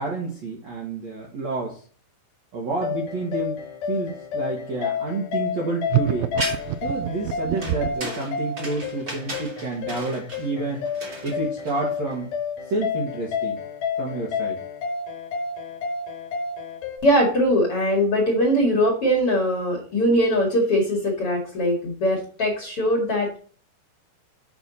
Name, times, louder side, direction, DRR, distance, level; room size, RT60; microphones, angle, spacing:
voice 1, 0.0-1.8 2.5-3.6 3.9-6.3 6.8-10.9 11.2-12.3 12.7-13.6 14.0-14.6, right 3 dB, 60° right, -2 dB, 1.9 m, -29 dB
sound 1, 2.8-17.0, left 6 dB, 65° left, 2.3 m, -30 dB
sound 2, 5.9-8.1, right 13 dB, 85° right, 2.9 m, -25 dB
sound 3, 6.4-6.9 7.6-12.1, right 1 dB, 30° right, 1.7 m, -35 dB
voice 2, 17.0-23.4, equal, 45° left, -1 dB, 2.1 m, -21 dB
8.0 x 6.0 x 4.0 m, 0.42 s
omnidirectional pair, 5.1 m